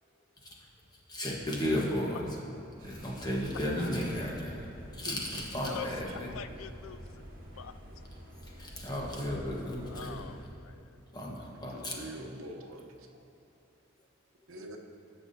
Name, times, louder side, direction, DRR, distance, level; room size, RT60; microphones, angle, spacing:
voice 1, 0.4-2.4 2.8-6.4 8.4-10.3 11.1-12.3, left 1 dB, 20° left, -3 dB, 1.2 m, -35 dB
sound 1, 2.8-10.4, equal, 45° right, 1.8 m, -48 dB
voice 2, 5.6-6.2 11.7-13.1 14.5-14.8, right 1 dB, 85° right, 3 dB, 0.8 m, -45 dB
voice 3, 6.3-7.0 7.6-7.7 9.9-11.0, left 8 dB, 80° left, 12 dB, 0.4 m, -44 dB
17.5 x 5.9 x 2.7 m, 2.7 s
head